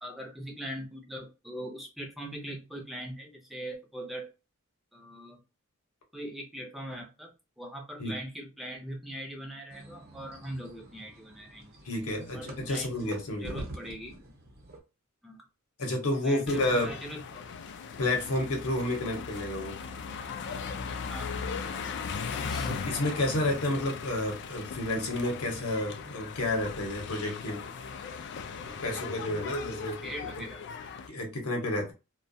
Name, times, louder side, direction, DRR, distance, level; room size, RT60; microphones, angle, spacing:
voice 1, 0.0-4.3 4.9-5.4 6.1-7.3 7.6-11.8 12.3-13.2 13.4-14.2 15.2-15.4 16.2-17.5 21.1-21.7 22.5-22.7 30.0-30.6, equal, ahead, 0.5 m, -41 dB
sound 1, 9.7-14.8, right 1 dB, 50° right, 0.8 m, -46 dB
voice 2, 11.8-13.6 15.8-16.9 18.0-19.8 22.3-27.7 28.6-30.3 31.1-31.9, left 1 dB, 75° left, 0.8 m, -31 dB
sound 2, 16.5-31.1, left 5 dB, 55° left, 0.3 m, -38 dB
2.3 x 2.2 x 2.6 m
head